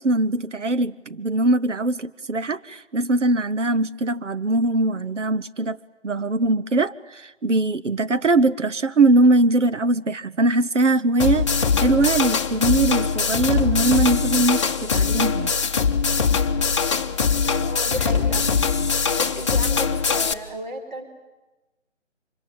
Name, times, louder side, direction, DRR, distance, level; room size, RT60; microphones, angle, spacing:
voice 1, 0.0-15.5, right 2 dB, 75° right, 13 dB, 1.1 m, -21 dB
sound 1, 11.2-20.3, left 5 dB, 25° left, 1.1 m, -22 dB
voice 2, 17.6-18.4 19.1-21.0, equal, 35° right, 4 dB, 4.3 m, -33 dB
26.0 x 23.0 x 9.1 m, 1.1 s
figure-of-eight pair, 155°, 37 cm